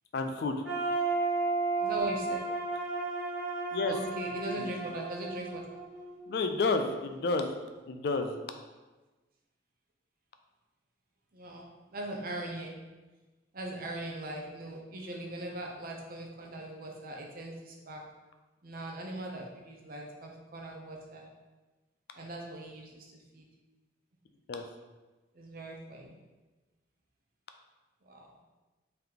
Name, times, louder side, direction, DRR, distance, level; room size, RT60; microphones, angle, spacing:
voice 1, 0.1-0.6 3.7-3.9 4.6-4.7 6.3-7.5 7.9-8.4 24.5-24.6, left 3 dB, 55° left, 6 dB, 0.3 m, -30 dB
sound 1, 0.6-6.6, right 3 dB, 5° right, 1.5 m, -33 dB
voice 2, 1.8-2.4 3.9-5.6 11.3-11.6 11.9-12.7 13.5-18.0 18.6-21.3 22.1-23.5 25.3-26.2 28.0-28.3, right 1 dB, 45° right, 0 dB, 0.6 m, -40 dB
3.9 x 3.3 x 2.9 m, 1.2 s
head